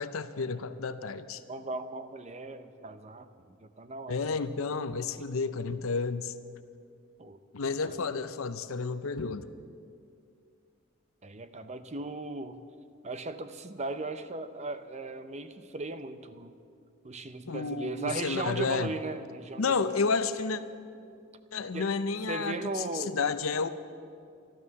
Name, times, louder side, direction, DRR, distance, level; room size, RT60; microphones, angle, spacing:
voice 1, 0.0-1.4 4.1-6.3 7.5-9.5 17.5-18.9 19.6-20.6 21.5-23.7, left 4 dB, 75° left, 12 dB, 0.6 m, -31 dB
voice 2, 1.5-3.3 3.6-4.4 5.2-5.3 7.2-7.4 7.9-8.0 11.2-12.6 13.0-16.5 17.0-19.9 21.7-21.9 22.3-23.2, right 2 dB, 30° right, 11 dB, 0.6 m, -37 dB
13.0 x 12.5 x 7.0 m, 2.4 s
head